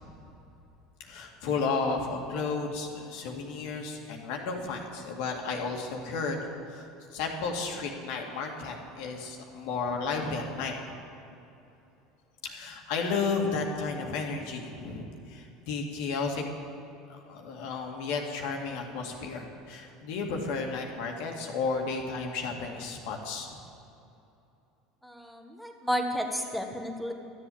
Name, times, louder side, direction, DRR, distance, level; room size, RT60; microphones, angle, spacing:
voice 1, 1.0-6.4 6.7-11.0 12.4-16.4 17.1-23.6, left 4 dB, 70° left, 1 dB, 2.1 m, -33 dB
voice 2, 25.0-27.1, equal, ahead, 2 dB, 1.6 m, -32 dB
13.0 x 7.9 x 8.6 m, 2.8 s
supercardioid pair, 95°, 0 cm